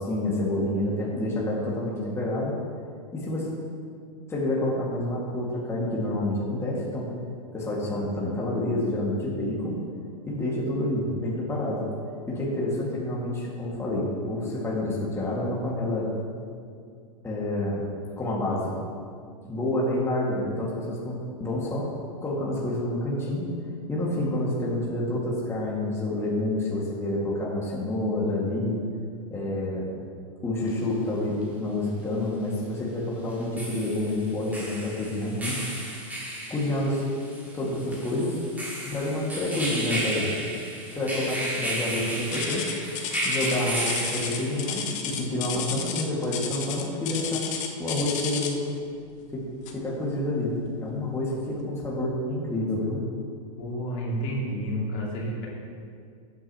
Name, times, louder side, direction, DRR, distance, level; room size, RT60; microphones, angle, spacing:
voice 1, 0.0-2.6 3.1-3.5 4.3-7.1 7.5-9.8 10.3-11.8 12.3-16.1 17.2-17.9 18.2-18.7 19.5-21.9 22.2-23.5 23.9-28.8 29.3-29.9 30.4-35.6 36.5-37.0 37.5-38.4 38.9-40.3 40.9-42.6 43.2-47.4 47.8-48.6 49.3-49.4 49.7-50.5 50.8-53.0, left 1 dB, 15° left, -5 dB, 2.1 m, -28 dB
sound 1, 30.7-30.8 33.3-44.9, right 1 dB, 10° right, 2.0 m, -33 dB
sound 2, 42.3-48.7 49.6-49.9 50.5-50.6 51.2-51.3, left 7 dB, 40° left, 1.1 m, -33 dB
voice 2, 53.6-55.5, equal, 60° left, -4 dB, 2.8 m, -30 dB
14.0 x 8.3 x 3.1 m, 2.2 s
hypercardioid pair, 115°, 18 cm